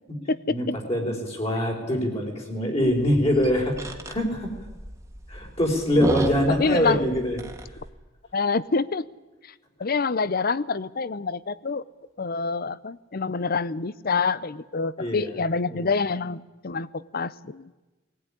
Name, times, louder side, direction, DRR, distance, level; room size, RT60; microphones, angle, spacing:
voice 1, 0.5-4.5 5.3-7.4 15.0-15.3 15.7-15.9, equal, 30° left, 0 dB, 4.2 m, -24 dB
sound 1, 2.8-7.9, right 1 dB, 15° right, 1.8 m, -33 dB
voice 2, 6.5-7.0 8.3-9.0 9.4-9.5 9.8-11.8 12.2-17.7, left 4 dB, 50° left, 19 dB, 0.7 m, -26 dB
19.0 x 18.5 x 9.9 m, 1.2 s
head